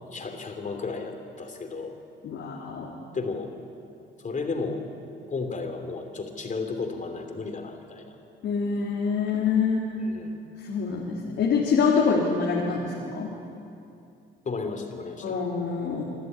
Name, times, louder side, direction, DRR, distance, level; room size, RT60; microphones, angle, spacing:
voice 1, 0.1-1.9 3.1-3.5 4.2-4.8 5.3-8.0 10.0-10.4 14.4-15.4, left 4 dB, 40° left, 5 dB, 3.2 m, -33 dB
voice 2, 2.2-2.9 8.4-9.8 10.6-13.3 15.2-16.0, left 5 dB, 75° left, -3 dB, 3.1 m, -25 dB
26.0 x 12.5 x 9.6 m, 2.6 s
cardioid pair, 90°, 20 cm